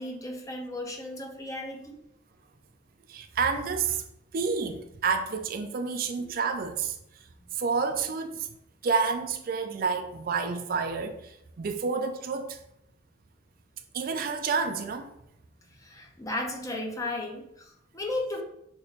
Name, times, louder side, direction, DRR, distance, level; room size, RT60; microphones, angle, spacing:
voice 1, 0.0-2.0 15.8-18.4, left 2 dB, 15° left, 0.6 m, -35 dB
voice 2, 3.1-4.0 4.3-7.0 7.5-8.5 8.8-12.6 13.9-15.1, right 5 dB, 50° right, 0.4 m, -29 dB
6.1 x 2.9 x 2.8 m
head